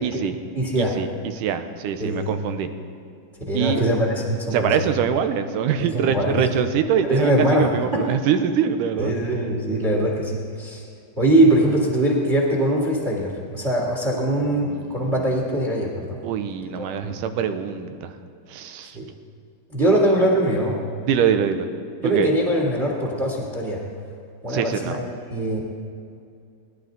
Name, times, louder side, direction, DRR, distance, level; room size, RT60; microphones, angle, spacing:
voice 1, 0.0-0.4 0.8-2.7 3.5-3.8 4.5-9.3 14.6-15.1 16.2-18.2 18.5-19.0 19.9-20.1 21.1-21.7 22.0-22.3 24.5-25.0, right 8 dB, 80° right, 8 dB, 2.3 m, -24 dB
voice 2, 0.5-0.9 2.0-2.3 3.5-4.7 5.8-6.5 7.0-7.7 7.9-8.0 9.0-10.8 11.2-16.2 16.8-17.2 18.9-19.1 19.7-20.8 22.0-23.8 24.4-25.0 25.3-25.6, right 1 dB, 25° right, -2 dB, 2.1 m, -22 dB
22.0 x 11.5 x 3.9 m, 2.4 s
omnidirectional pair, 3.7 m